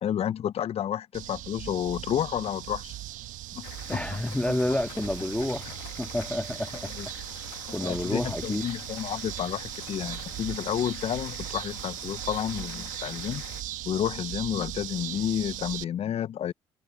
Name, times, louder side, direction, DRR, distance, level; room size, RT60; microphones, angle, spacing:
voice 1, 0.0-3.0 3.5-4.1 4.5-4.6 6.9-7.1 7.8-13.4 13.9-16.5, left 10 dB, 50° left, 0.4 m, -31 dB
sound 1, 1.1-15.8, right 15 dB, 75° right, 1.0 m, -38 dB
sound 2, 3.6-13.6, left 20 dB, 90° left, 1.1 m, -46 dB
voice 2, 3.9-6.9 7.7-8.6, left 1 dB, 10° left, 1.4 m, -29 dB
hypercardioid pair, 55°, 14 cm